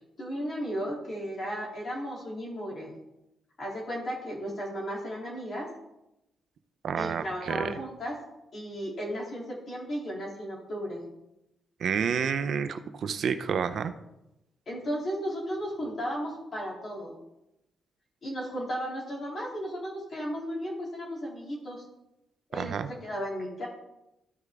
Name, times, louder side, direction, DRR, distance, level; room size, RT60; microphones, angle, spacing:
voice 1, 0.2-2.9 3.6-5.7 7.0-8.2 8.5-11.0 14.7-17.1 18.2-21.8 22.5-22.7 23.0-23.7, equal, 35° left, -3 dB, 2.5 m, -35 dB
voice 2, 6.8-7.7 11.8-13.9 22.5-22.9, right 7 dB, 50° right, 10 dB, 0.5 m, -29 dB
14.0 x 4.7 x 3.4 m, 0.90 s
cardioid pair, 180°, 0 cm